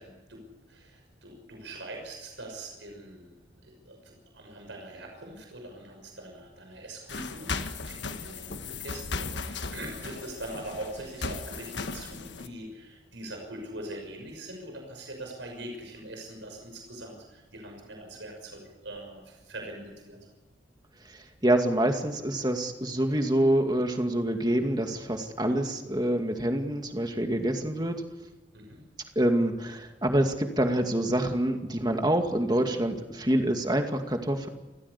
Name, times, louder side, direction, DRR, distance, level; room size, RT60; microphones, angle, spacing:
voice 1, 0.0-20.3 28.5-28.8, right 1 dB, 80° right, 2 dB, 6.2 m, -42 dB
sound 1, 7.1-12.5, left 4 dB, 75° left, 1.5 m, -36 dB
voice 2, 21.4-28.0 29.2-34.5, right 1 dB, 20° right, 5 dB, 2.2 m, -26 dB
29.5 x 15.5 x 8.4 m, 1.1 s
head